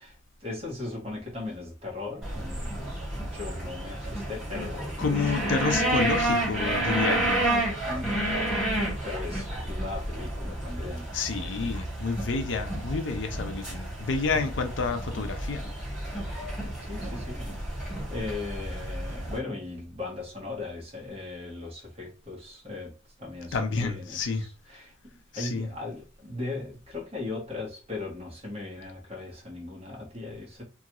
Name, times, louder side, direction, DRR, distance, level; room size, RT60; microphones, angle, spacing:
voice 1, 0.0-5.6 7.8-8.2 9.0-11.1 11.8-11.9 14.3-14.5 16.8-30.6, left 3 dB, 30° right, 1.3 m, -38 dB
sound 1, 2.2-19.4, right 1 dB, 5° right, 1.6 m, -31 dB
voice 2, 5.0-7.5 11.1-15.6 23.5-24.5 25.3-25.7, left 4 dB, 70° left, 0.5 m, -29 dB
3.0 x 2.5 x 2.9 m
head